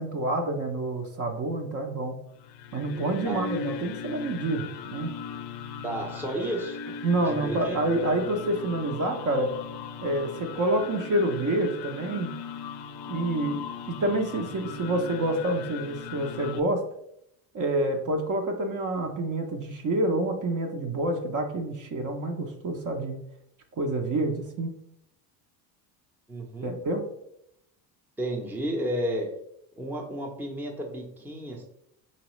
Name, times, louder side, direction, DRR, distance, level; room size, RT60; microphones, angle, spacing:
voice 1, 0.0-2.2 2.7-5.1 7.0-9.5 10.0-12.3 13.1-16.8 17.5-23.2 23.8-24.7 26.6-27.0, right 1 dB, 40° right, 4 dB, 0.7 m, -28 dB
sound 1, 2.3-16.6, left 7 dB, 55° left, 0.5 m, -38 dB
voice 2, 5.8-6.8 7.2-7.8 26.3-26.7 28.2-29.3 29.8-31.6, right 1 dB, 5° right, 1 dB, 0.7 m, -32 dB
4.1 x 3.0 x 3.0 m, 0.77 s
supercardioid pair, 90°, 49 cm